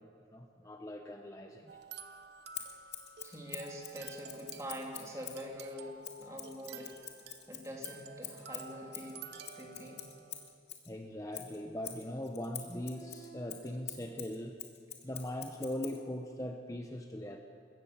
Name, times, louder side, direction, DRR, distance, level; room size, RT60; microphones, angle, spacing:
voice 1, 0.2-1.8 10.9-14.6 15.0-17.4, left 1 dB, 20° left, 4 dB, 0.8 m, -40 dB
sound 1, 1.7-10.6, right 6 dB, 70° right, 0.9 m, -51 dB
Scissors, 2.5-5.5 6.0-10.9 11.3-16.0, left 11 dB, 70° left, 2.3 m, -46 dB
voice 2, 3.2-6.9 7.5-9.2 9.5-10.0, equal, 15° right, -1 dB, 3.0 m, -44 dB
21.5 x 17.5 x 7.2 m, 2.4 s
head